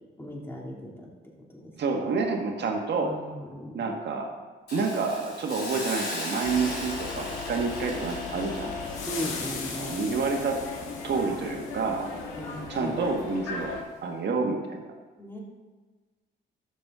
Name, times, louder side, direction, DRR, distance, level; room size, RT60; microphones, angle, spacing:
voice 1, 0.2-1.1 1.5-1.7 3.0-3.8 9.1-9.9 12.3-13.0 15.2-15.4, equal, 10° left, -2 dB, 2.5 m, -37 dB
voice 2, 1.8-3.1 3.7-4.3 4.7-8.7 9.8-10.6 11.0-12.1 12.7-15.0, right 4 dB, 60° right, 2 dB, 1.7 m, -29 dB
Hiss, 4.7-11.7 12.1-12.3, left 1 dB, 55° left, 3.2 m, -38 dB
sound 1, 6.4-13.8, left 4 dB, 80° left, 1.8 m, -36 dB
12.5 x 7.4 x 3.7 m, 1.4 s
cardioid pair, 90°, 20 cm